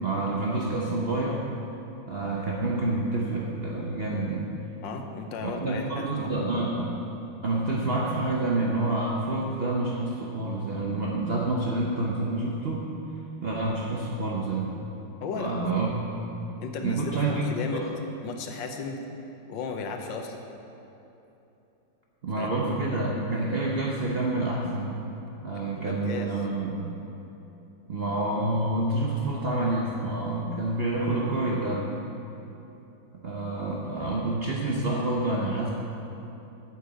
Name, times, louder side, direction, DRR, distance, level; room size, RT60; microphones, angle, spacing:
voice 1, 0.0-1.5 2.1-4.5 5.6-7.0 7.4-12.9 13.4-14.7 15.4-16.2 16.8-17.4 17.7-17.8 22.2-24.9 25.4-26.8 27.9-31.9 33.2-35.7, right 2 dB, 80° right, -3 dB, 0.5 m, -28 dB
voice 2, 4.8-6.5 15.2-15.7 16.6-17.9 18.2-19.0 19.5-20.4 22.4-22.5 25.5-26.3, left 4 dB, 70° left, 4 dB, 1.5 m, -35 dB
8.7 x 5.6 x 7.7 m, 3.0 s
omnidirectional pair, 2.2 m